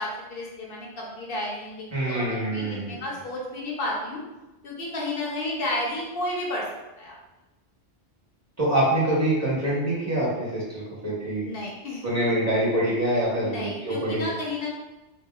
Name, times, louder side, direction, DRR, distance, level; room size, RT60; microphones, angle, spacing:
voice 1, 0.0-4.2 4.6-6.7 7.0-7.1 11.4-12.4 13.4-14.7, left 1 dB, 60° left, -3 dB, 0.8 m, -32 dB
voice 2, 1.9-3.0 8.6-11.4 12.0-14.3, right 1 dB, 15° right, -8 dB, 1.0 m, -25 dB
3.9 x 2.0 x 2.3 m, 1.0 s
omnidirectional pair, 1.2 m